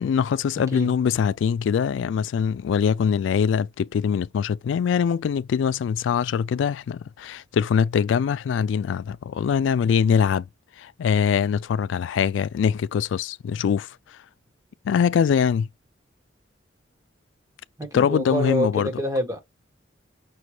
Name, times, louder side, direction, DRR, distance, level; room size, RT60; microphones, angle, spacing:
voice 1, 0.0-10.5 10.8-14.2 14.8-15.7 17.9-18.9, left 7 dB, 80° left, 0.3 m, -23 dB
voice 2, 17.8-19.4, equal, 20° right, 1.2 m, -26 dB
6.2 x 2.3 x 2.9 m
head